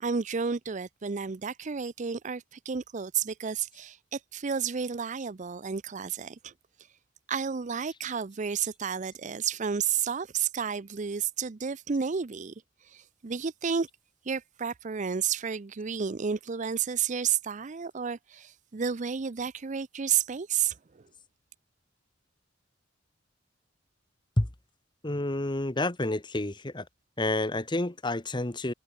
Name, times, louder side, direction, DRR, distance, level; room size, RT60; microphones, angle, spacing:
voice 1, 0.0-6.5 7.3-12.5 12.9-13.9 14.3-20.7, right 7 dB, 40° right, 0.5 m, -31 dB
voice 2, 25.0-26.8 27.2-28.7, left 2 dB, 25° left, 1.2 m, -29 dB
head